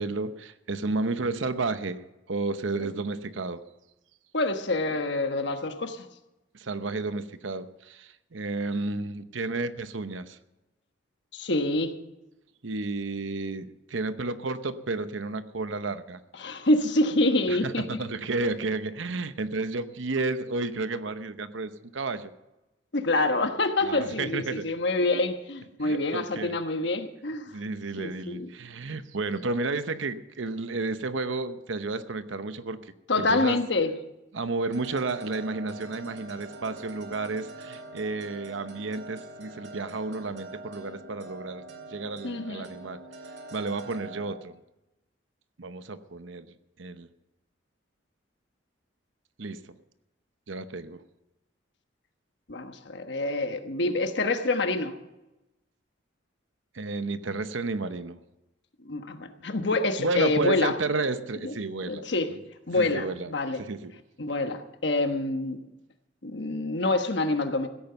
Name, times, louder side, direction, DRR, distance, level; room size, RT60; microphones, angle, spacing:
voice 1, 0.0-3.6 6.5-10.4 12.6-16.2 17.5-22.3 23.8-24.6 25.8-26.5 27.5-33.6 34.3-41.6 41.9-43.0 43.5-44.6 45.6-46.5 46.8-47.1 49.4-49.6 50.5-51.0 56.7-58.2 60.0-62.0 62.8-63.3 63.6-63.9, right 3 dB, 75° right, 12 dB, 0.8 m, -32 dB
voice 2, 4.3-6.1 11.3-11.9 16.4-17.8 22.9-27.5 28.0-28.5 33.1-33.9 42.2-42.7 52.5-54.9 58.8-60.7 61.4-61.5 61.9-62.3 62.7-63.6 64.2-65.6 66.2-67.7, left 2 dB, 60° left, 7 dB, 1.3 m, -26 dB
sound 1, 34.7-44.3, right 2 dB, 60° right, 2.2 m, -44 dB
16.0 x 9.0 x 6.9 m, 0.96 s
head